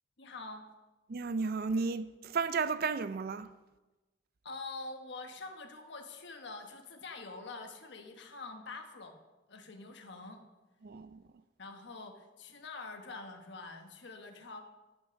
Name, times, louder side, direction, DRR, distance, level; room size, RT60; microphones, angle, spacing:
voice 1, 0.2-0.6 4.4-9.2 9.5-10.4 11.6-14.6, left 3 dB, 60° left, 1.2 m, -45 dB
voice 2, 1.1-3.5 10.8-11.2, right 4 dB, 50° right, 0.4 m, -33 dB
11.0 x 5.9 x 6.3 m
head